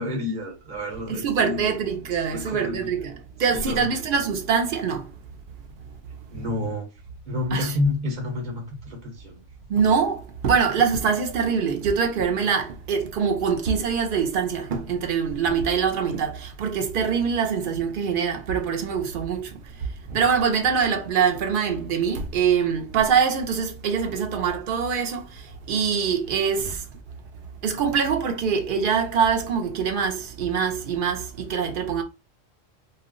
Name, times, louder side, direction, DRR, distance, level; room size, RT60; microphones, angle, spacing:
voice 1, 0.0-1.7 2.3-2.9 3.5-3.9 6.3-6.9 7.2-9.4, left 2 dB, 35° right, 1.0 m, -29 dB
voice 2, 1.1-5.1 7.5-7.8 9.7-19.6 20.1-25.3 25.7-26.8 27.6-32.0, right 6 dB, 60° right, 0.5 m, -24 dB
2.4 x 2.0 x 3.6 m
omnidirectional pair, 1.3 m